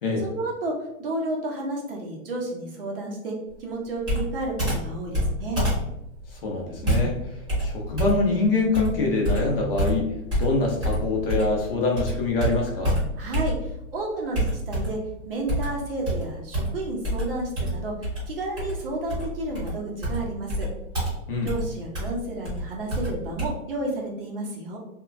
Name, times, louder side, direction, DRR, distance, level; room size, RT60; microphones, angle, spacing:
voice 1, 0.2-5.6 13.2-15.0 15.3-18.0 18.3-20.7 21.4-24.8, right 2 dB, 40° right, -1 dB, 0.5 m, -31 dB
Computer keyboard, 4.0-11.6 12.0-13.9 14.3-15.1 15.5-23.5, equal, 10° right, 0.9 m, -28 dB
voice 2, 6.3-13.0 21.3-21.5, left 3 dB, 40° left, -1 dB, 0.5 m, -25 dB
2.8 x 2.2 x 2.4 m, 0.84 s
hypercardioid pair, 165°, 42 cm